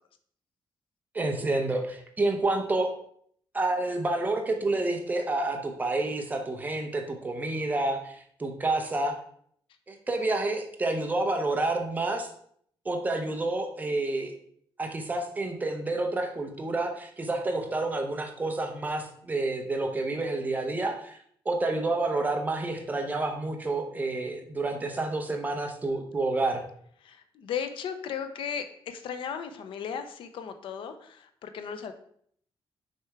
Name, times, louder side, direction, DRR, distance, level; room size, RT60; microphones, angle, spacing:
voice 1, 1.1-2.9 3.5-9.2 9.9-12.3 12.8-14.3 14.8-21.2 21.5-26.6, right 2 dB, 20° right, 4 dB, 0.7 m, -29 dB
voice 2, 27.0-31.9, left 7 dB, 70° left, 9 dB, 0.6 m, -36 dB
6.5 x 3.4 x 4.6 m, 0.64 s
wide cardioid pair, 175°, 9 cm